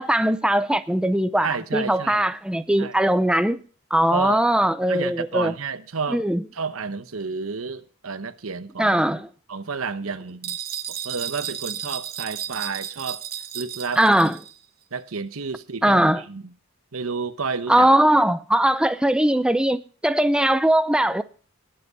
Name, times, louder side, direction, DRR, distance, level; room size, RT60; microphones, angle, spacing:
voice 1, 0.0-3.6 3.9-5.5 6.1-6.4 8.8-9.3 14.0-14.4 15.8-16.2 17.7-21.2, right 1 dB, 5° right, 0.6 m, -20 dB
voice 2, 1.4-2.3 2.8-3.0 4.1-4.4 4.9-6.2 6.5-9.0 9.5-10.6 10.9-13.2 13.5-14.0 14.9-16.0 16.3-16.4 16.9-17.9, right 5 dB, 90° right, 1.0 m, -30 dB
sound 1, 10.4-14.6, right 10 dB, 45° right, 0.8 m, -33 dB
20.5 x 7.8 x 4.1 m
head